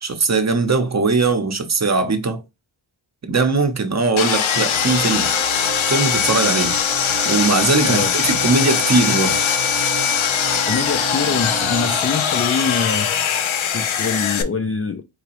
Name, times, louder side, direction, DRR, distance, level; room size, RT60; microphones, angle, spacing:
voice 1, 0.0-2.4 3.2-5.3 5.9-6.8 7.2-9.4, right 3 dB, 35° right, 0.7 m, -20 dB
Sawing, 4.2-14.4, left 8 dB, 70° left, 0.7 m, -21 dB
sound 1, 4.5-12.0, right 7 dB, 75° right, 0.7 m, -32 dB
voice 2, 7.8-8.2 10.7-13.2 13.7-15.0, left 5 dB, 30° left, 0.4 m, -24 dB
4.8 x 2.9 x 2.9 m
wide cardioid pair, 110°, 49 cm